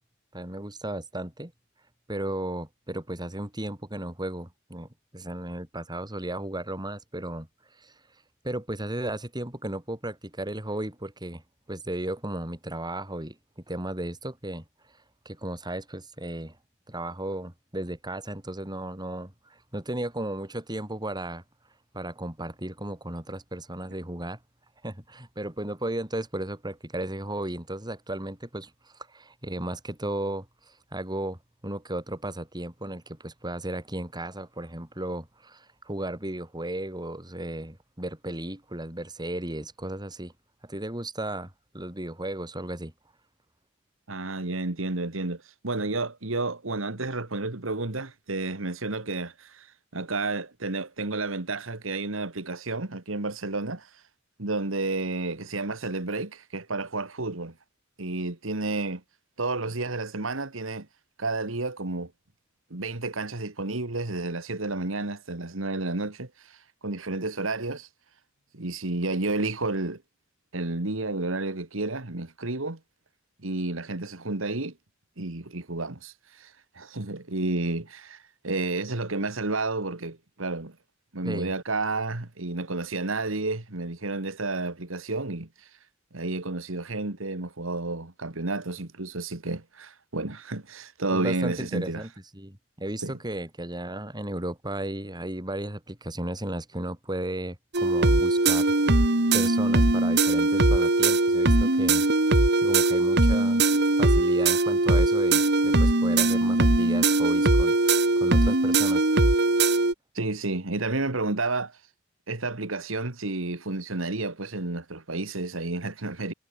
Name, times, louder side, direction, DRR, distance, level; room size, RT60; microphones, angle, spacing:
voice 1, 0.3-1.5 2.1-7.5 7.8-7.9 8.4-11.4 11.7-14.6 15.2-16.6 16.9-21.4 21.9-24.4 24.8-40.3 40.6-42.9 81.2-81.5 91.1-98.7 99.3-102.1 102.6-103.7 104.0-107.7 108.2-109.1, right 1 dB, 20° right, 5.0 m, -35 dB
voice 2, 44.1-49.7 49.9-53.9 54.4-57.5 58.0-59.0 59.4-60.9 61.2-62.1 62.7-67.9 68.5-70.0 70.5-72.8 73.4-74.7 75.2-80.8 81.1-85.7 86.1-92.0 93.0-93.1 110.1-111.8 112.3-116.3, right 2 dB, 80° right, 2.1 m, -31 dB
sound 1, 97.7-109.9, right 2 dB, 55° right, 2.4 m, -21 dB
head